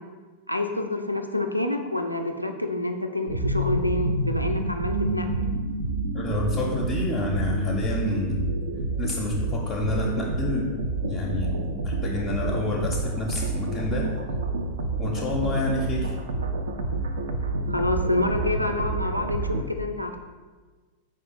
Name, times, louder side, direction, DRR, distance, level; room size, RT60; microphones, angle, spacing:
voice 1, 0.5-5.5 17.7-20.2, left 2 dB, 90° left, 4 dB, 0.3 m, -28 dB
sound 1, 3.3-19.6, right 2 dB, 65° right, 0.3 m, -28 dB
voice 2, 6.1-8.5 9.0-14.1 15.0-16.1, left 2 dB, 30° left, -2 dB, 0.5 m, -29 dB
4.5 x 2.3 x 4.4 m, 1.4 s
figure-of-eight pair, 90°, 0 cm